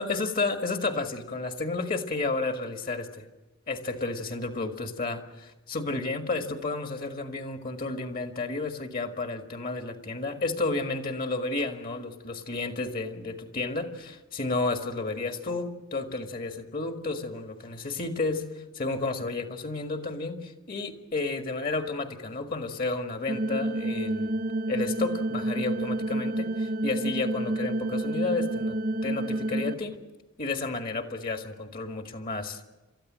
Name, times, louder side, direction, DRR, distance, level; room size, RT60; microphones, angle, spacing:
voice 1, 0.0-3.3 3.7-18.4 18.7-24.4 24.7-28.8 29.0-30.0 30.4-32.6, left 3 dB, 40° left, 5 dB, 1.8 m, -31 dB
sound 1, 23.3-29.7, right 1 dB, 40° right, 0.6 m, -29 dB
29.5 x 14.0 x 7.6 m, 1.1 s
head